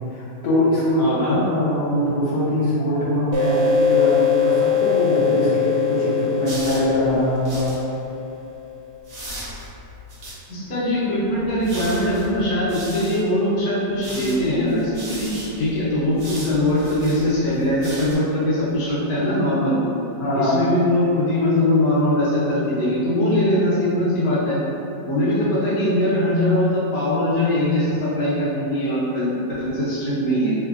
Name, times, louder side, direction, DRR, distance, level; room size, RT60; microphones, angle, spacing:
voice 1, 0.1-7.7 20.2-20.6, equal, 85° left, -10 dB, 1.4 m, -22 dB
voice 2, 1.0-1.4 10.5-15.3 15.6-19.8 20.3-24.6 25.1-30.5, left 1 dB, 65° left, -10 dB, 1.5 m, -21 dB
sound 1, 3.3-8.6, left 7 dB, 80° right, 1.2 m, -22 dB
sound 2, 6.4-7.8 9.0-10.4 11.3-13.2 13.9-18.1, equal, 55° right, 0.9 m, -37 dB
3.7 x 2.7 x 2.4 m, 2.8 s
omnidirectional pair, 1.9 m